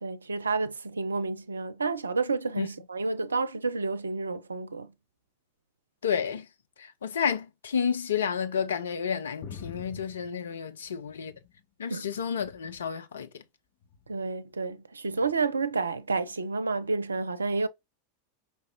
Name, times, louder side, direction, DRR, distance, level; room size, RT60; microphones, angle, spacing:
voice 1, 0.0-4.9 11.9-12.1 14.1-17.7, right 4 dB, 80° right, 0.4 m, -30 dB
voice 2, 6.0-6.5 6.8-11.3 11.8-13.4, left 7 dB, 70° left, 0.6 m, -31 dB
sound 1, 9.4-11.6 12.0-12.9 13.8-14.2 15.2-15.3, left 6 dB, 50° left, 1.2 m, -47 dB
5.2 x 3.2 x 2.6 m
figure-of-eight pair, 85°, 0 cm